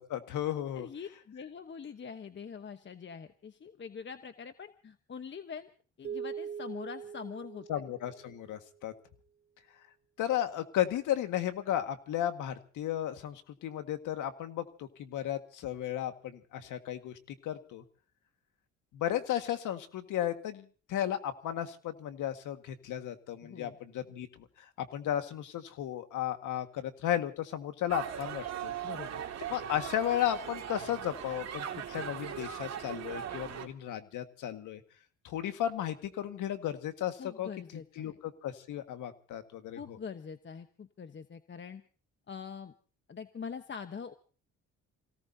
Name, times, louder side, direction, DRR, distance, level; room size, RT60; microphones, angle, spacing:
voice 1, 0.0-0.9 7.7-8.9 10.2-17.8 18.9-24.3 24.6-28.7 29.5-34.8 35.2-40.0, left 11 dB, 85° left, 8 dB, 1.8 m, -34 dB
voice 2, 0.7-5.7 6.0-7.7 23.4-23.8 28.8-29.2 37.2-38.2 39.7-41.8 42.3-42.7 43.1-44.1, left 6 dB, 40° left, 8 dB, 1.1 m, -44 dB
sound 1, 6.0-8.6, right 7 dB, 35° right, 0.9 m, -42 dB
sound 2, 27.9-33.7, right 9 dB, 60° right, 2.3 m, -39 dB
28.0 x 18.0 x 2.8 m, 0.38 s
cardioid pair, 90°, 30 cm